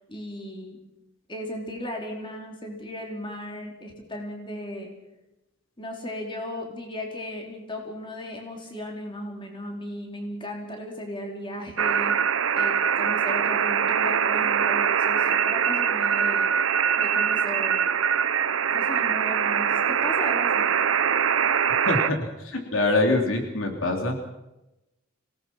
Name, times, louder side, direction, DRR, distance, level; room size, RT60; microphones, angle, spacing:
voice 1, 0.1-0.8 1.3-4.9 5.8-12.1 12.5-16.5 17.0-17.9 18.7-20.7, left 1 dB, 25° left, 1 dB, 4.2 m, -36 dB
sound 1, 11.8-22.1, right 7 dB, 80° right, 0.7 m, -23 dB
voice 2, 21.8-24.3, left 2 dB, 80° left, 3 dB, 3.2 m, -25 dB
26.0 x 18.5 x 5.9 m, 0.95 s
head